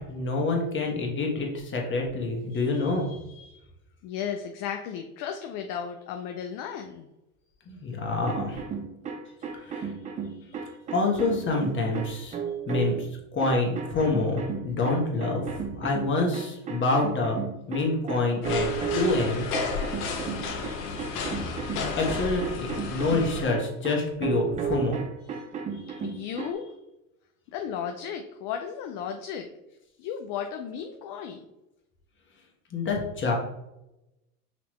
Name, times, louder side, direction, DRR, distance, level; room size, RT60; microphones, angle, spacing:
voice 1, 0.1-3.1 7.7-8.6 9.6-9.9 10.9-12.4 12.7-13.1 13.3-17.4 17.7-18.7 18.9-19.5 21.7-25.0 32.7-33.4, left 3 dB, 25° left, 0 dB, 1.3 m, -27 dB
voice 2, 2.5-3.7 4.0-7.1 9.8-9.9 10.2-10.8 25.3-25.4 25.7-26.7 27.5-29.5 30.0-31.5, left 8 dB, 45° left, 5 dB, 0.5 m, -36 dB
sound 1, 8.2-13.1 13.4-26.5, right 6 dB, 20° right, 0.3 m, -34 dB
sound 2, 18.4-23.5, left 4 dB, 85° left, 1.0 m, -32 dB
5.8 x 2.9 x 3.1 m, 0.92 s
supercardioid pair, 105°, 45 cm